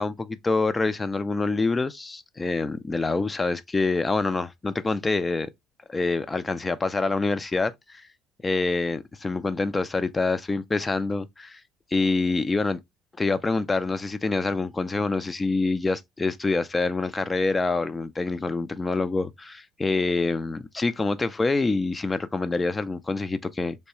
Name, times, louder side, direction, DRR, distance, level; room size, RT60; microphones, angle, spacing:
voice 1, 0.0-5.5 5.9-8.0 8.4-11.6 11.9-12.8 13.2-23.8, left 3 dB, 20° left, 0.4 m, -26 dB
3.2 x 2.9 x 2.8 m
figure-of-eight pair, 55°, 0 cm